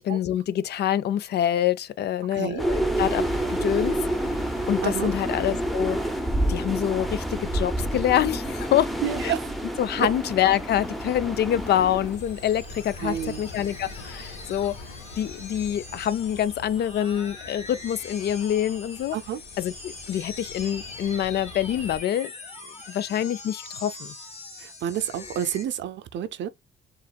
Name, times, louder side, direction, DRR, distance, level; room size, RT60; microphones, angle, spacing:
voice 1, 0.0-4.0 4.7-6.0 6.5-8.9 9.2-9.3 9.8-14.7 15.2-19.2 19.6-22.3 22.9-24.1, left 11 dB, 55° left, 0.4 m, -26 dB
voice 2, 2.3-2.6 4.8-5.1 9.0-9.5 10.0-10.1 13.0-13.4 19.1-19.4 24.6-26.5, right 10 dB, 65° right, 0.5 m, -29 dB
sound 1, 2.6-12.2, right 1 dB, ahead, 0.6 m, -28 dB
sound 2, 2.9-22.0, left 2 dB, 80° left, 1.5 m, -44 dB
sound 3, 12.1-25.6, left 3 dB, 30° left, 1.5 m, -42 dB
7.0 x 2.5 x 2.3 m
cardioid pair, 90°, 20 cm